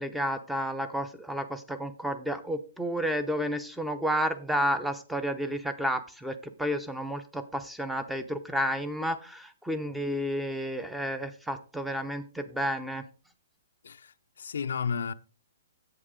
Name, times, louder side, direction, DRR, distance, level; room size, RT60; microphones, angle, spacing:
voice 1, 0.0-13.0, equal, ahead, 0.7 m, -31 dB
voice 2, 13.8-15.1, left 6 dB, 75° left, 0.5 m, -33 dB
7.8 x 7.6 x 3.6 m
hypercardioid pair, 145°, 0 cm